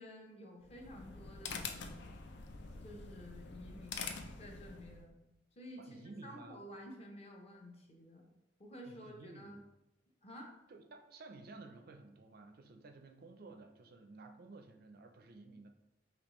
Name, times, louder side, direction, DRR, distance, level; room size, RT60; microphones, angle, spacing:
voice 1, 0.0-2.0 2.8-5.2 5.6-8.2 8.6-9.6 10.2-10.5, equal, 30° left, 0 dB, 0.8 m, -52 dB
sound 1, 0.6-5.1, left 5 dB, 60° left, 0.5 m, -46 dB
voice 2, 5.8-6.6 8.9-9.7 10.7-15.7, right 3 dB, 50° right, 6 dB, 0.4 m, -54 dB
5.2 x 3.0 x 3.1 m, 0.89 s
head